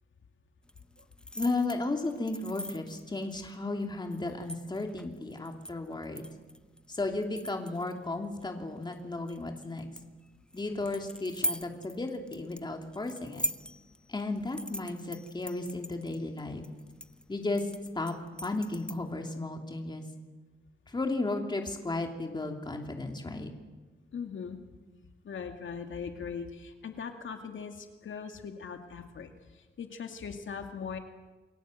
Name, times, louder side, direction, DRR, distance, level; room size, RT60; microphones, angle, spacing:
sound 1, 0.6-19.3, equal, 5° left, 0.7 m, -42 dB
voice 1, 1.3-6.3 6.9-9.9 10.5-13.5 14.1-16.6 17.3-17.6 17.9-20.0 20.9-23.5, left 2 dB, 20° left, 3 dB, 3.0 m, -34 dB
voice 2, 24.1-24.6 25.2-31.0, left 6 dB, 70° left, 5 dB, 2.3 m, -40 dB
29.0 x 22.5 x 8.0 m, 1.3 s
wide cardioid pair, 140°, 21 cm